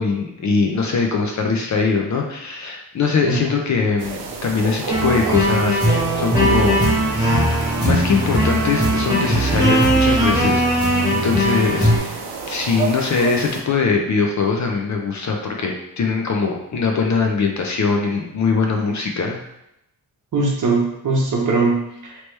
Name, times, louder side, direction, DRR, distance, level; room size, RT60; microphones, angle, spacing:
voice 1, 0.0-7.0 7.8-10.6 11.1-12.2 12.5-19.4, left 4 dB, 45° left, 2 dB, 0.5 m, -21 dB
voice 2, 3.2-3.6 20.3-22.2, right 3 dB, 50° right, -1 dB, 0.9 m, -21 dB
sound 1, 4.0-13.6, right 5 dB, 70° right, 0.6 m, -31 dB
sound 2, 4.9-12.0, equal, 10° right, 1.1 m, -18 dB
3.2 x 3.0 x 3.2 m, 0.82 s
wide cardioid pair, 150°, 40 cm